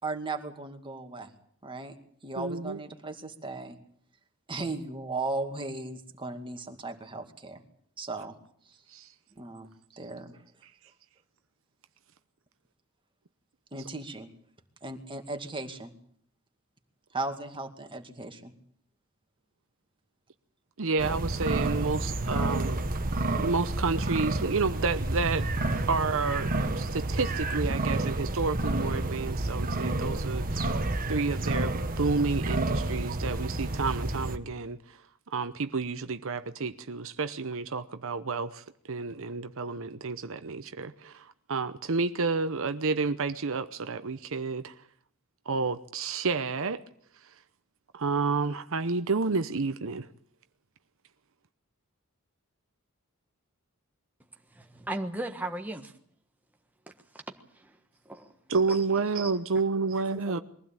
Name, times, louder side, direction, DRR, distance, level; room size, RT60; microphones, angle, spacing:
voice 1, 0.0-1.3 1.6-2.0 2.2-3.8 4.5-7.6 8.0-8.4 8.7-8.8 9.4-10.4 13.7-14.3 14.8-15.9 17.1-18.5, right 3 dB, 25° right, 2.3 m, -36 dB
voice 2, 2.4-2.8 8.9-9.1 20.8-22.8 23.4-25.5 25.9-30.8 31.1-35.0 35.3-44.7 45.5-46.8 47.9-50.1 58.5-60.4, right 4 dB, 65° right, 0.8 m, -30 dB
sound 1, 21.0-34.4, right 2 dB, 40° right, 1.5 m, -30 dB
voice 3, 54.5-55.9 57.1-57.2 57.5-57.8 58.0-58.3 58.7-58.8 59.2-59.3 60.1-60.4, right 1 dB, 10° right, 1.4 m, -37 dB
22.5 x 15.5 x 8.9 m
head